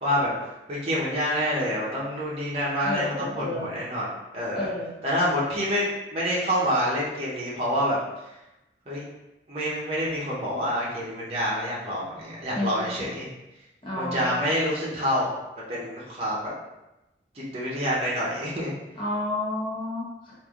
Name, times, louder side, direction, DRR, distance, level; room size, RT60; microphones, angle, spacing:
voice 1, 0.0-0.3 0.7-4.1 4.3-4.7 5.0-8.0 8.9-9.0 9.5-13.3 14.0-15.3 15.7-16.5 17.3-18.7, equal, 35° right, -7 dB, 0.7 m, -27 dB
voice 2, 2.8-3.7 4.5-4.9 12.5-13.1 13.8-14.4 19.0-20.3, left 2 dB, 30° left, -6 dB, 0.8 m, -31 dB
3.2 x 2.5 x 2.4 m, 0.96 s
head